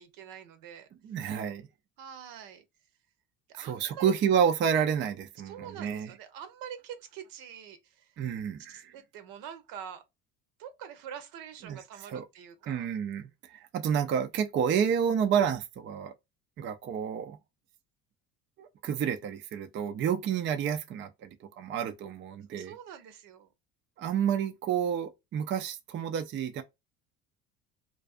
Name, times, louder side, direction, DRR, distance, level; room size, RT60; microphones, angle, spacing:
voice 1, 0.0-0.9 2.0-2.6 3.5-4.1 5.4-8.1 8.7-10.0 10.6-12.9 22.6-23.5, right 8 dB, 70° right, 0.8 m, -45 dB
voice 2, 1.0-1.7 3.6-6.1 8.2-8.9 11.6-11.8 12.1-12.3 12.7-16.1 16.6-17.4 18.6-22.7 24.0-26.6, right 8 dB, 35° right, 0.4 m, -30 dB
2.4 x 2.3 x 2.4 m
supercardioid pair, 90°, 35 cm